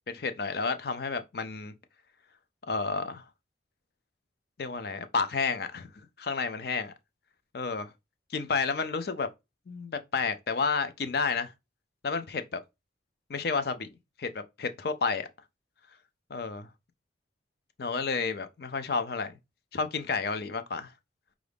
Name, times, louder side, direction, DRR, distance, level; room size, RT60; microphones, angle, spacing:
voice 1, 0.1-1.7 2.7-3.2 4.6-5.9 6.2-6.9 7.5-7.9 8.3-9.3 9.7-11.5 12.0-12.4 13.3-13.9 14.2-15.3 16.3-16.7 17.8-19.3 19.7-20.9, left 4 dB, 55° left, 0.5 m, -31 dB
4.7 x 2.5 x 3.4 m
head